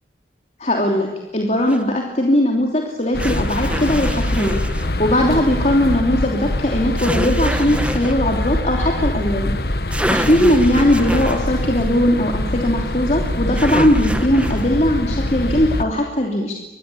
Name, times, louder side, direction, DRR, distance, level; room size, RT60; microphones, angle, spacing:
voice 1, 0.6-4.6 5.0-9.5 10.1-16.5, left 1 dB, 40° left, 1 dB, 3.1 m, -19 dB
sound 1, 1.7-1.8 3.2-4.9 6.9-8.1 9.6-9.7 9.9-11.4 13.5-14.7, right 1 dB, 5° right, 1.4 m, -26 dB
sound 2, 3.1-15.8, left 1 dB, 60° left, 1.4 m, -23 dB
25.5 x 21.0 x 8.5 m, 1.0 s
head